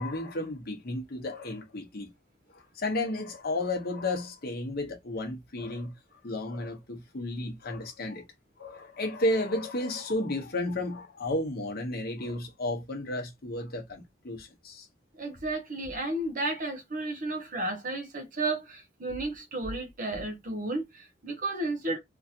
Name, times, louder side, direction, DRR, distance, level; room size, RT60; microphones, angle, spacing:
voice 1, 0.0-2.1 2.5-6.0 6.2-8.3 8.6-14.9, left 2 dB, 55° left, 0.9 m, -33 dB
voice 2, 15.2-22.0, right 2 dB, 45° right, 0.9 m, -33 dB
3.1 x 2.6 x 2.7 m
head